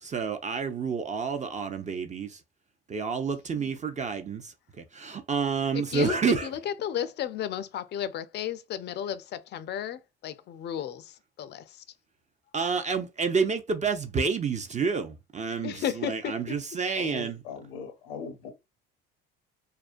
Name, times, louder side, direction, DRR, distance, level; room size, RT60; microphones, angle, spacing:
voice 1, 0.0-2.4 2.9-6.5 12.5-17.4, right 5 dB, 25° right, 0.4 m, -29 dB
voice 2, 5.7-11.8 15.6-16.6, left 9 dB, 40° left, 0.4 m, -34 dB
voice 3, 17.0-18.5, left 5 dB, 85° left, 0.7 m, -40 dB
2.3 x 2.1 x 2.5 m
hypercardioid pair, 70°, 29 cm